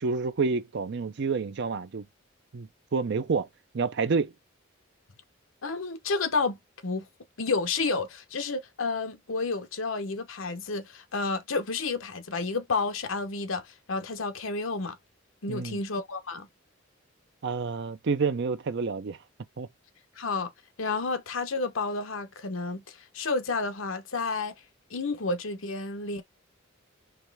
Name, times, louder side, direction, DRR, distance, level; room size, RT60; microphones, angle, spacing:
voice 1, 0.0-2.0 2.5-3.5 3.7-4.3 15.5-15.8 17.4-19.2 19.6-19.7, right 4 dB, 60° right, 0.5 m, -28 dB
voice 2, 5.6-7.1 7.4-15.0 15.4-16.5 20.2-20.5 20.8-24.5 24.9-26.2, left 3 dB, 75° left, 0.9 m, -31 dB
4.7 x 3.2 x 3.4 m
head